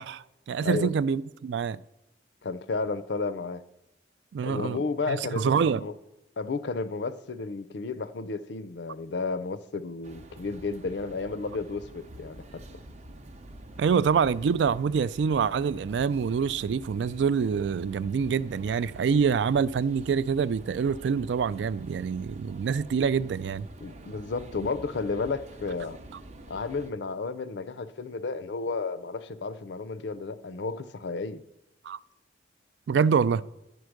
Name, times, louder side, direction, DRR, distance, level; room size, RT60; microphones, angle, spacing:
voice 1, 0.0-1.8 4.3-4.8 5.1-5.8 13.8-23.7 31.9-32.0 32.9-33.4, right 6 dB, 75° right, 0.3 m, -26 dB
voice 2, 2.4-3.6 4.4-5.9 6.4-12.8 23.8-26.0 26.5-31.4, left 4 dB, 70° left, 0.5 m, -32 dB
sound 1, 10.0-26.9, right 1 dB, 35° right, 0.6 m, -47 dB
10.5 x 4.7 x 6.4 m
head